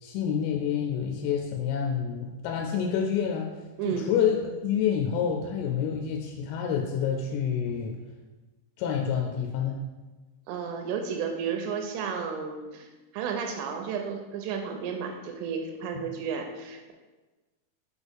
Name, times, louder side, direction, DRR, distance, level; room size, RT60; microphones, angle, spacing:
voice 1, 0.0-3.5 3.9-8.0 8.8-9.8, left 7 dB, 90° left, 1 dB, 3.2 m, -28 dB
voice 2, 3.8-4.1 10.5-16.9, right 6 dB, 85° right, 3 dB, 3.0 m, -33 dB
7.2 x 4.1 x 3.4 m, 1.2 s
omnidirectional pair, 5.8 m